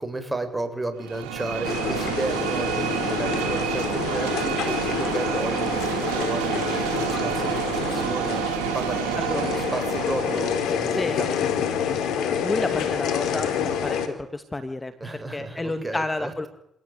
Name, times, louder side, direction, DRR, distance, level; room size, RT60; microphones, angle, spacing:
voice 1, 0.0-11.5 15.0-16.5, right 2 dB, 15° right, 8 dB, 7.9 m, -33 dB
sound 1, 1.0-10.8, right 12 dB, 85° right, 2.6 m, -29 dB
sound 2, 1.6-14.1, left 8 dB, 75° left, 4.0 m, -28 dB
voice 2, 9.2-9.6 10.9-11.2 12.2-16.5, left 2 dB, 20° left, 9 dB, 2.2 m, -31 dB
27.0 x 18.5 x 9.6 m, 0.77 s
hypercardioid pair, 55°, 0 cm